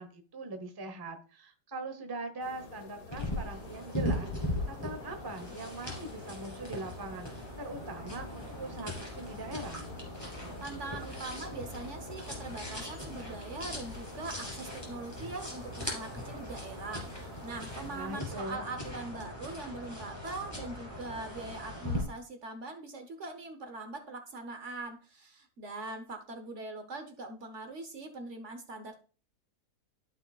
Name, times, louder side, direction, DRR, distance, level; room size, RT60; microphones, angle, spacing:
voice 1, 0.0-4.3 4.7-7.3 7.6-9.8 17.9-18.6, right 2 dB, 20° right, 6 dB, 0.8 m, -41 dB
sound 1, 2.4-18.2, left 4 dB, 60° left, 1.6 m, -51 dB
sound 2, 3.1-22.0, left 1 dB, 15° left, 3.1 m, -39 dB
voice 2, 10.6-29.0, right 3 dB, 50° right, 6 dB, 1.2 m, -42 dB
13.5 x 5.9 x 2.4 m, 0.37 s
omnidirectional pair, 1.8 m